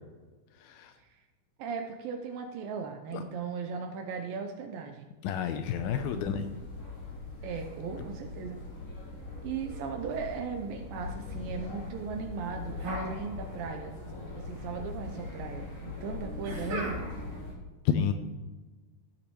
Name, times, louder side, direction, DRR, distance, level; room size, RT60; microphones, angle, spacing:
voice 1, 0.6-0.9 3.1-3.2 5.2-6.5 17.9-18.1, left 8 dB, 80° left, 8 dB, 2.3 m, -30 dB
voice 2, 1.6-5.1 6.1-6.6 7.4-8.6 9.4-13.9 14.5-17.0, right 5 dB, 80° right, 4 dB, 2.2 m, -37 dB
sound 1, 5.7-17.5, left 3 dB, 40° left, 3.9 m, -41 dB
sound 2, 12.8-13.8 14.0-14.8 16.4-17.4, right 1 dB, 50° right, 4.6 m, -38 dB
15.5 x 7.0 x 3.1 m, 1.3 s
omnidirectional pair, 4.7 m